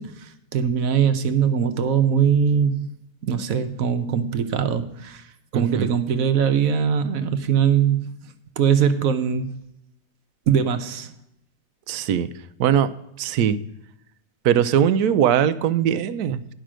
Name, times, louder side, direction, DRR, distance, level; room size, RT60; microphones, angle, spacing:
voice 1, 0.0-2.9 3.2-5.3 5.5-9.5 10.5-11.1, right 7 dB, 70° right, 9 dB, 1.2 m, -21 dB
voice 2, 5.5-5.9 11.9-12.3 12.6-12.9 13.2-13.6 14.4-16.5, right 9 dB, 90° right, 13 dB, 1.1 m, -20 dB
10.0 x 5.8 x 6.2 m, 0.82 s
omnidirectional pair, 1.5 m